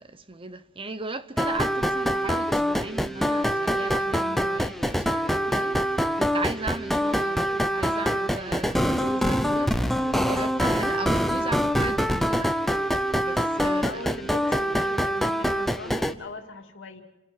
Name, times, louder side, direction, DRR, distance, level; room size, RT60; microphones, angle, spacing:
voice 1, 0.0-12.5 13.2-14.0, right 3 dB, 25° right, 0.8 m, -36 dB
sound 1, 1.4-16.1, equal, ahead, 0.7 m, -25 dB
voice 2, 13.8-17.0, left 2 dB, 60° left, 2.6 m, -40 dB
29.5 x 10.5 x 9.1 m
head